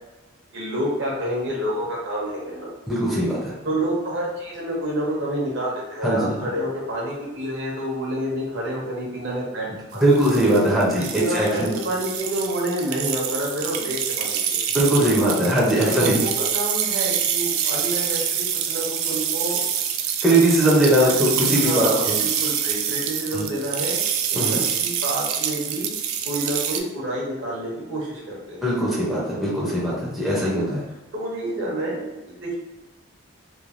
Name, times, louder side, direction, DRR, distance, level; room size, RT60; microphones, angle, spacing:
voice 1, 0.5-2.7 3.6-10.0 11.0-14.6 15.9-19.6 20.7-21.1 21.4-24.0 24.3-25.9 26.2-28.6 31.1-32.5, right 1 dB, 55° right, -4 dB, 0.8 m, -28 dB
voice 2, 2.9-3.5 6.0-6.4 9.9-11.7 14.7-16.3 20.2-22.1 23.3-23.4 24.4-24.6 28.6-30.8, right 1 dB, ahead, -7 dB, 0.5 m, -20 dB
sound 1, 10.0-26.8, right 8 dB, 80° right, 0.3 m, -26 dB
3.1 x 2.2 x 2.5 m, 1.1 s
head